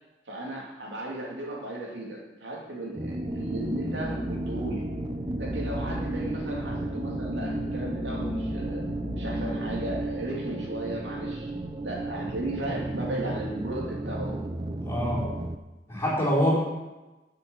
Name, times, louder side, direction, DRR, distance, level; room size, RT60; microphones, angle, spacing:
voice 1, 0.3-4.9 5.4-8.9 9.2-11.5 11.8-14.4, right 1 dB, 85° right, -2 dB, 2.8 m, -35 dB
sound 1, 2.9-15.6, right 2 dB, 25° right, 0.6 m, -34 dB
sound 2, 3.2-10.0, equal, 60° right, 3.3 m, -35 dB
voice 2, 14.8-15.3 15.9-16.6, equal, 15° left, -7 dB, 4.5 m, -25 dB
12.0 x 6.8 x 6.4 m, 1.1 s
head